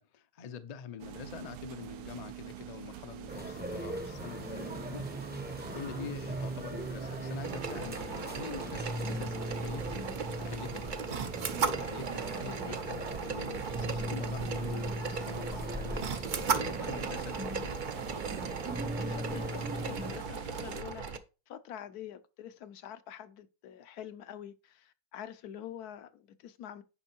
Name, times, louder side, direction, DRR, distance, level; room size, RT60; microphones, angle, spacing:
voice 1, 0.0-5.1 5.7-10.1 10.4-10.8 11.2-17.8, left 6 dB, 45° left, 0.5 m, -45 dB
sound 1, 1.0-20.8, right 11 dB, 80° right, 1.2 m, -45 dB
sound 2, 3.3-20.2, equal, 10° right, 0.6 m, -39 dB
sound 3, 7.4-21.2, right 5 dB, 50° right, 0.5 m, -37 dB
voice 2, 19.0-21.2 21.5-26.8, left 10 dB, 70° left, 1.2 m, -46 dB
9.9 x 5.3 x 4.5 m
omnidirectional pair, 1.7 m